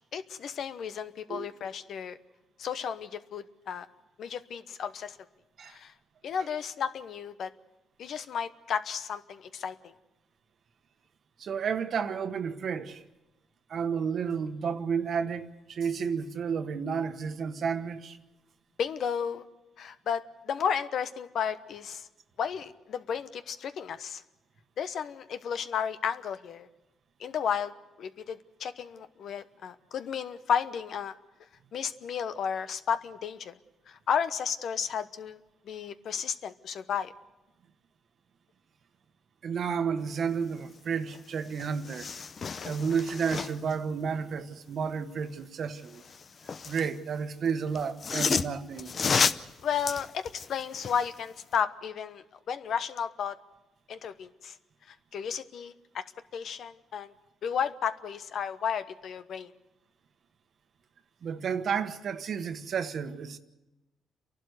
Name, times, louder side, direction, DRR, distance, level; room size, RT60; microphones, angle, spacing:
voice 1, 0.1-2.2 2.6-3.9 4.2-5.2 5.7-5.9 6.2-7.5 8.0-9.9 18.8-19.4 19.8-22.1 22.4-24.2 24.8-26.7 27.2-27.7 28.0-31.2 31.7-33.5 33.9-35.4 35.7-37.1 49.6-53.4 53.9-54.5 55.1-56.0 56.3-57.1 57.4-59.5, left 7 dB, 65° left, 1.0 m, -33 dB
voice 2, 11.4-13.0 13.7-18.2 39.4-42.1 42.6-46.0 46.6-49.0 61.2-63.4, right 6 dB, 60° right, 1.3 m, -31 dB
sound 1, 41.1-41.2 41.5-43.7 45.9-46.9 47.7-51.1 51.5-51.6, left 5 dB, 45° left, 0.7 m, -31 dB
29.5 x 12.0 x 8.1 m
cardioid pair, 90°, 0 cm